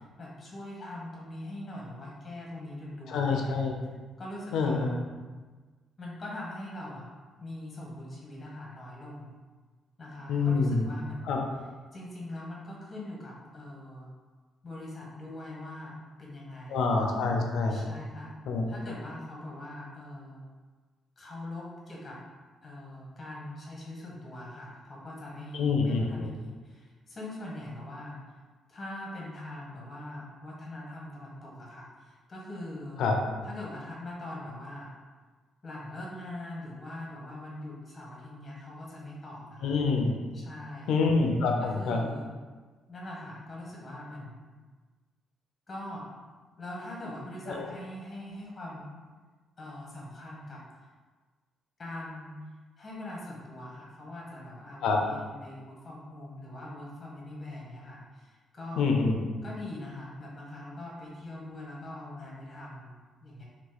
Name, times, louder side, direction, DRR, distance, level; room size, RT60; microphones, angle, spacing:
voice 1, 0.0-3.6 4.2-4.9 6.0-7.1 7.4-9.3 10.0-11.4 11.9-14.1 14.6-16.8 17.7-18.3 18.7-20.4 21.2-22.2 22.6-28.2 28.7-33.0 33.4-34.9 35.6-39.8 40.3-40.9 41.6-42.3 42.9-44.5 45.7-46.1 46.6-48.9 49.6-50.6 51.8-52.3 52.8-58.8 59.4-63.4, left 1 dB, 30° left, -4 dB, 1.0 m, -42 dB
voice 2, 3.1-3.8 4.5-5.0 10.3-10.9 11.3-11.4 16.7-17.8 18.5-18.6 25.5-26.3 33.0-33.2 39.6-40.2 40.9-42.0 47.5-47.6 54.8-55.0 58.8-59.2, left 4 dB, 80° left, 2 dB, 0.5 m, -26 dB
2.9 x 2.4 x 3.8 m, 1.4 s
cardioid pair, 90°, 0 cm